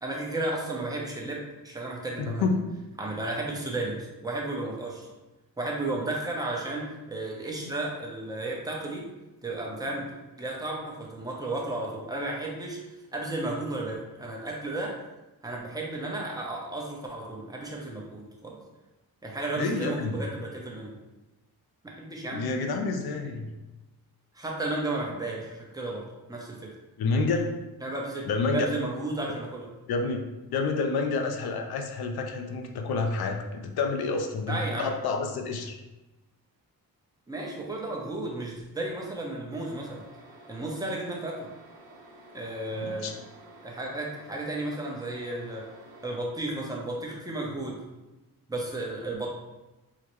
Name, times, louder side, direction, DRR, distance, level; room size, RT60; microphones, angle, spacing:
voice 1, 0.0-2.5 3.0-5.1 5.6-9.0 9.4-10.1 10.4-12.8 13.1-15.0 15.4-18.6 19.2-20.9 21.8-22.4 23.2-23.3 24.3-26.7 27.8-29.7 34.5-34.9 37.3-40.0 40.5-41.5 42.3-43.1 43.6-45.7 46.0-47.8 48.5-49.3, right 2 dB, 10° right, -2 dB, 0.7 m, -33 dB
voice 2, 2.2-2.6 7.6-7.7 19.6-20.2 22.3-23.5 27.0-27.5 28.3-28.7 29.9-30.3 30.5-35.8 42.8-43.1, left 4 dB, 80° left, 5 dB, 0.5 m, -29 dB
sound 1, 39.5-46.2, right 2 dB, 75° right, 0.7 m, -51 dB
3.8 x 2.1 x 3.0 m, 1.0 s
cardioid pair, 90°, 37 cm